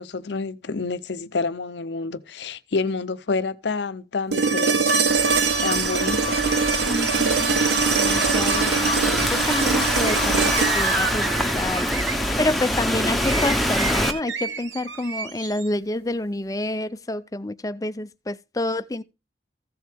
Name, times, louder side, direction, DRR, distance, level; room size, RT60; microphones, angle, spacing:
voice 1, 0.0-5.0 5.6-6.5, left 4 dB, 70° left, 0.6 m, -28 dB
sound 1, 4.3-12.4 14.5-14.6, right 4 dB, 65° right, 1.2 m, -23 dB
Thunderstorm / Rain, 5.1-14.1, left 1 dB, ahead, 1.0 m, -25 dB
voice 2, 6.9-7.6 7.9-19.0, left 1 dB, 20° left, 0.5 m, -28 dB
sound 2, 10.0-15.7, right 5 dB, 85° right, 1.1 m, -31 dB
14.5 x 7.4 x 3.5 m
head